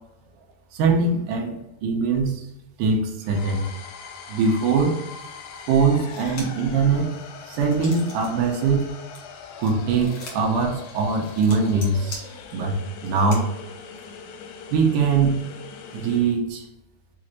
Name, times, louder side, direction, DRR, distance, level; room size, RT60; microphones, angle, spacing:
voice 1, 0.7-2.5 2.8-3.7 4.3-5.0 5.7-7.2 7.5-8.9 9.6-12.3 12.5-13.5 14.7-15.4 15.9-16.7, right 4 dB, 80° right, 1 dB, 2.0 m, -22 dB
sound 1, 3.2-16.4, left 5 dB, 80° left, 2.1 m, -41 dB
sound 2, 6.0-6.7 7.1-8.3 8.7-13.4, left 3 dB, 65° left, 1.2 m, -42 dB
6.1 x 2.5 x 3.0 m, 0.92 s
omnidirectional pair, 4.6 m